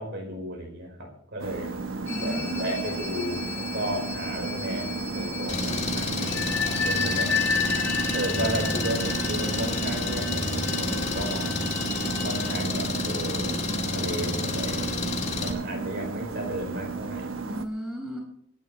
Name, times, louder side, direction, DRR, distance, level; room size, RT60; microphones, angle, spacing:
voice 1, 0.0-1.7 2.2-6.6 6.8-7.3 8.1-11.5 12.2-13.5 13.9-15.1 15.4-17.3, right 1 dB, 55° right, 1 dB, 4.8 m, -34 dB
sound 1, 1.4-17.7, right 4 dB, 75° right, 1.0 m, -34 dB
sound 2, 2.1-12.6, left 4 dB, 10° left, 1.9 m, -32 dB
voice 2, 2.1-2.9 17.4-18.2, equal, 5° right, 1 dB, 5.8 m, -34 dB
Engine, 5.5-15.5, left 3 dB, 35° left, 2.2 m, -30 dB
26.0 x 9.4 x 3.2 m, 0.65 s
head